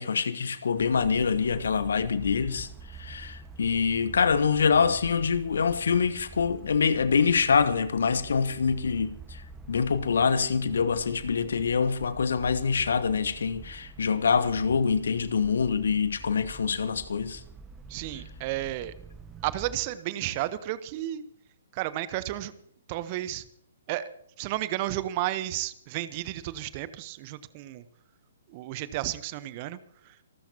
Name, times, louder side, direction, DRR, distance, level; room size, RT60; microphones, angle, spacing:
voice 1, 0.0-9.4 9.7-17.4, left 6 dB, 65° left, 1.1 m, -25 dB
sound 1, 0.7-19.8, right 4 dB, 10° right, 1.4 m, -47 dB
voice 2, 17.9-18.9 19.4-21.2 21.7-22.5 22.9-23.5 23.9-24.1 24.4-27.8 28.5-29.8, right 15 dB, 35° right, 0.9 m, -32 dB
26.5 x 13.0 x 2.9 m
figure-of-eight pair, 125°, 0 cm